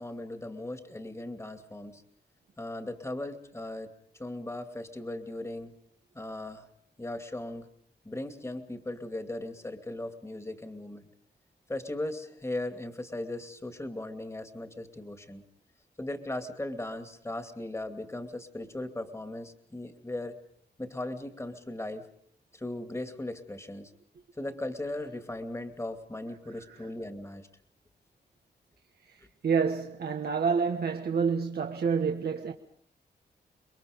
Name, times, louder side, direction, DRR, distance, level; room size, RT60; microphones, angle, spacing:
voice 1, 0.0-2.0 2.6-3.9 4.2-5.7 6.1-6.7 7.0-7.7 8.0-11.1 11.7-15.4 16.0-20.4 20.8-22.1 22.5-23.9 24.4-27.5, left 1 dB, 15° left, 2.6 m, -38 dB
voice 2, 29.1-32.5, right 6 dB, 65° right, 1.4 m, -28 dB
28.5 x 22.0 x 5.2 m
cardioid pair, 75°, 18 cm